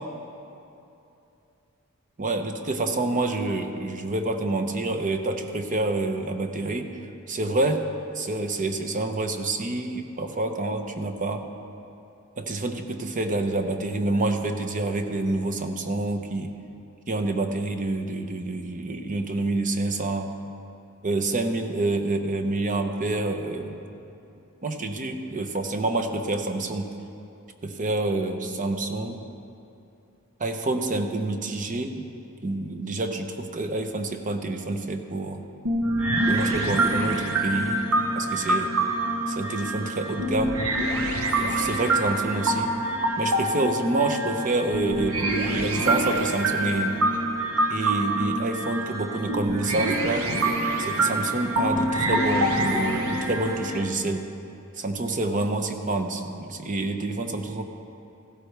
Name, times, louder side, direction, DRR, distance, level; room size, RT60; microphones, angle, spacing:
voice 1, 2.2-6.9 7.3-7.9 8.1-11.4 12.4-16.5 17.1-20.3 21.0-23.8 24.6-26.9 27.6-29.2 30.4-32.0 32.4-35.4 36.3-37.8 38.1-38.7 39.4-40.6 41.4-42.7 43.2-47.0 47.7-50.3 50.8-54.3 54.8-57.6, right 2 dB, 35° right, 6 dB, 0.7 m, -27 dB
sound 1, 35.6-53.8, right 1 dB, 75° right, 1.2 m, -26 dB
15.5 x 12.5 x 3.3 m, 2.8 s
head